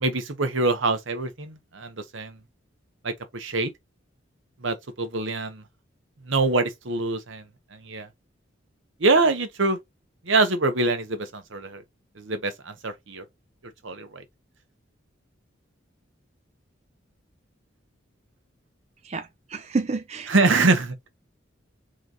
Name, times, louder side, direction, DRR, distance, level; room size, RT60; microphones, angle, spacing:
voice 1, 0.0-2.4 3.0-3.7 4.6-5.6 6.2-7.4 7.7-8.1 9.0-9.8 10.2-11.8 12.2-13.2 13.8-14.2 20.3-21.1, right 3 dB, 80° right, 1.1 m, -24 dB
voice 2, 19.0-20.7, right 4 dB, 35° right, 0.4 m, -30 dB
3.8 x 3.3 x 3.9 m
head